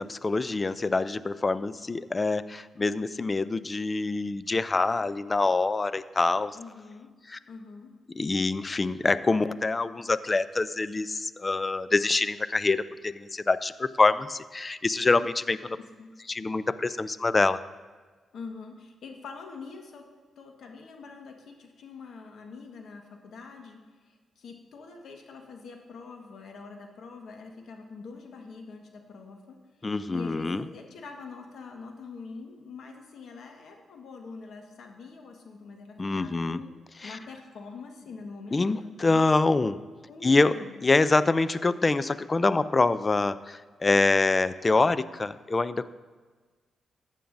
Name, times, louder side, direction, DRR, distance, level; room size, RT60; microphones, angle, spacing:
voice 1, 0.0-6.6 7.3-7.4 8.2-15.8 16.3-17.6 29.8-30.7 36.0-36.6 37.0-37.2 38.5-39.8 40.2-40.6 40.8-45.9, left 3 dB, 30° left, 15 dB, 0.4 m, -25 dB
voice 2, 6.5-7.1 7.5-7.9 16.0-16.1 18.3-20.1 20.4-36.7 37.0-39.3 40.1-40.7, left 4 dB, 75° left, 3 dB, 1.4 m, -44 dB
15.0 x 9.1 x 2.6 m, 1.4 s
cardioid pair, 65°, 0 cm